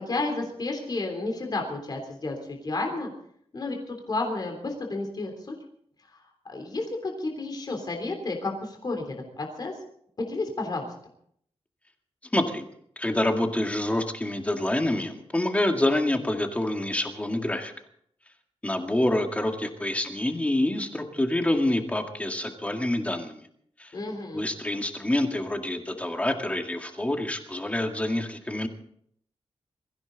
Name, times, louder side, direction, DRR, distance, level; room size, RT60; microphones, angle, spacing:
voice 1, 0.0-3.1 3.5-5.5 6.1-9.7 10.2-10.9 23.9-24.5, left 2 dB, 40° left, 2 dB, 3.4 m, -32 dB
voice 2, 12.3-12.6 13.0-17.7 18.6-23.4 23.8-23.9 24.3-28.7, left 1 dB, 15° left, 4 dB, 2.0 m, -27 dB
23.0 x 15.0 x 4.0 m, 0.64 s
wide cardioid pair, 170°, 11 cm